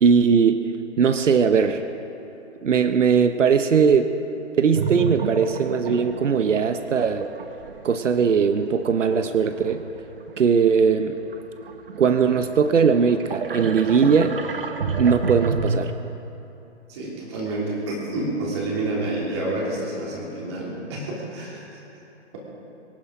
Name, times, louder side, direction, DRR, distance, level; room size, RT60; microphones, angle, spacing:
voice 1, 0.0-0.7 1.0-1.8 2.6-4.1 4.6-7.3 7.8-9.9 10.4-11.2 12.0-14.4 15.0-15.9, right 6 dB, 85° right, 9 dB, 0.9 m, -19 dB
sound 1, 4.7-10.7 11.1-15.8, right 5 dB, 50° right, 1.1 m, -30 dB
voice 2, 16.9-21.6, right 2 dB, 20° right, -4 dB, 3.0 m, -28 dB
24.0 x 10.0 x 5.0 m, 3.0 s
hypercardioid pair, 170°, 36 cm